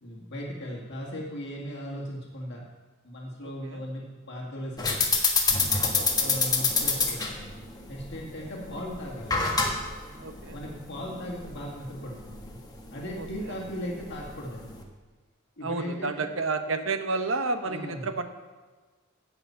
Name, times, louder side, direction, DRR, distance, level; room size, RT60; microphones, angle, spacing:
voice 1, 0.0-2.7 3.0-5.2 6.2-7.6 7.9-9.5 10.5-12.6 12.9-14.8 15.6-16.3 17.6-18.1, equal, 55° left, -2 dB, 2.0 m, -37 dB
voice 2, 3.4-3.8 5.9-6.3 10.2-10.6 13.2-13.3 15.6-18.2, right 3 dB, 70° right, 8 dB, 1.0 m, -31 dB
sound 1, 4.8-14.8, left 4 dB, 20° left, 1.4 m, -28 dB
16.0 x 6.0 x 5.7 m, 1.3 s
head